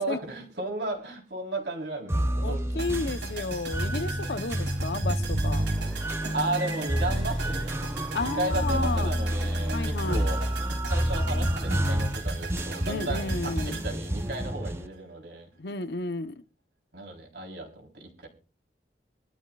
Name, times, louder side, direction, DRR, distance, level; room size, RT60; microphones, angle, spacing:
voice 1, 0.0-2.8 6.3-7.8 8.2-10.4 10.9-15.5 16.9-18.3, right 2 dB, 75° right, 3.6 m, -34 dB
sound 1, 2.1-14.9, equal, 15° right, 0.7 m, -29 dB
voice 2, 2.4-5.6 8.1-9.1 9.7-10.3 12.9-13.8 15.6-16.3, left 3 dB, 65° left, 0.8 m, -32 dB
sound 2, 2.8-15.0 15.2-15.3, right 4 dB, 90° right, 3.9 m, -40 dB
sound 3, 5.5-10.6, left 1 dB, ahead, 2.4 m, -48 dB
23.5 x 12.5 x 2.3 m
head